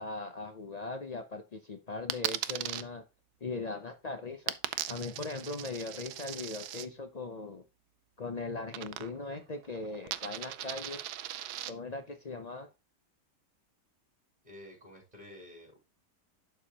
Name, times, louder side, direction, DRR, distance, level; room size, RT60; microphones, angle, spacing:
voice 1, 0.0-3.0 3.4-4.6 4.9-7.6 8.2-11.0 11.6-12.7, left 3 dB, 75° left, 0.3 m, -39 dB
Coin (dropping), 2.1-2.8 4.5-6.9 8.7-9.4 9.6-11.7, right 12 dB, 70° right, 1.1 m, -38 dB
voice 2, 14.4-15.8, left 1 dB, 20° right, 3.8 m, -50 dB
11.5 x 4.8 x 2.9 m
omnidirectional pair, 1.9 m